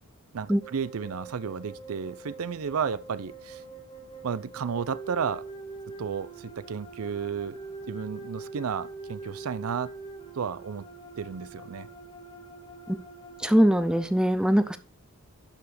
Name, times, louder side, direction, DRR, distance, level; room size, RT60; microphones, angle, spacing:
voice 1, 0.3-3.6 4.2-5.4 6.0-7.6 7.9-9.9 10.4-10.9 11.2-11.9, right 6 dB, 80° right, 0.5 m, -32 dB
sound 1, 0.6-14.0, right 3 dB, 25° left, 1.9 m, -44 dB
voice 2, 13.4-14.8, equal, 5° right, 0.5 m, -22 dB
11.5 x 4.8 x 5.0 m
head